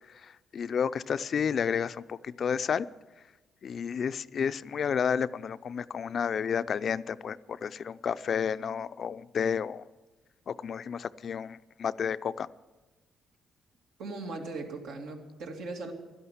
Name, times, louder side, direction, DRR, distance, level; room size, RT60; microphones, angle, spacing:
voice 1, 0.2-2.9 3.6-9.8 10.5-12.5, left 7 dB, 55° left, 14 dB, 0.4 m, -31 dB
voice 2, 14.0-15.9, right 3 dB, 85° right, 1 dB, 2.6 m, -38 dB
12.5 x 11.5 x 9.3 m, 1.2 s
cardioid pair, 90°, 0 cm